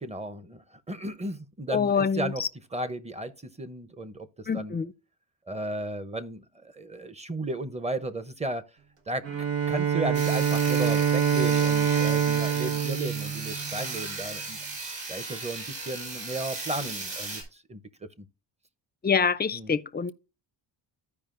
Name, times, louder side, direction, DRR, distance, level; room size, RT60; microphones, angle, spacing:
voice 1, 0.0-2.4 2.7-3.3 3.6-4.8 5.5-8.6 9.1-9.3 9.7-14.6 15.1-17.4 17.7-18.3 19.5-19.7, right 1 dB, 15° right, 0.7 m, -34 dB
voice 2, 1.7-2.5 4.5-4.9 19.0-20.1, left 6 dB, 25° left, 0.4 m, -26 dB
Bowed string instrument, 9.2-14.0, right 8 dB, 90° right, 1.4 m, -25 dB
Sawing, 10.1-17.4, right 3 dB, 45° right, 4.6 m, -36 dB
14.5 x 5.0 x 2.5 m
cardioid pair, 100°, 43 cm